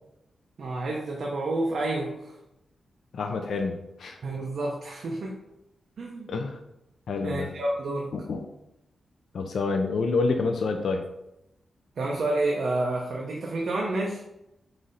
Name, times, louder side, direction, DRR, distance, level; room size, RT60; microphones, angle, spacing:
voice 1, 0.6-2.3 4.2-5.4 6.0-6.3 7.2-8.1 12.0-14.2, right 2 dB, 55° right, -1 dB, 0.5 m, -29 dB
voice 2, 3.1-4.2 6.3-6.6 7.1-7.5 8.1-8.5 9.3-11.0, left 4 dB, 65° left, 4 dB, 0.4 m, -28 dB
3.9 x 3.1 x 3.8 m, 0.86 s
wide cardioid pair, 180°, 0 cm